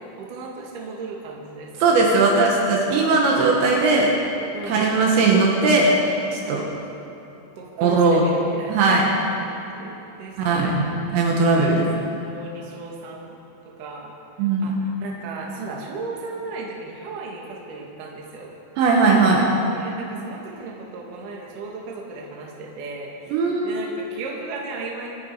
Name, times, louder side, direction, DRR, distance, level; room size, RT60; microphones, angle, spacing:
voice 1, 0.0-2.1 4.5-5.2 6.4-6.7 7.6-9.0 9.5-10.8 11.4-11.8 12.3-13.4 13.8-14.1 14.6-18.5 19.7-25.1, right 3 dB, 55° right, -2 dB, 2.8 m, -36 dB
voice 2, 1.8-4.1 4.6-6.0 6.3-6.6 7.8-9.1 10.4-10.9 11.1-11.9 14.4-14.8 18.8-19.4 23.3-23.9, right 3 dB, 70° right, -2 dB, 3.5 m, -19 dB
25.5 x 9.8 x 4.8 m, 2.9 s
omnidirectional pair, 5.7 m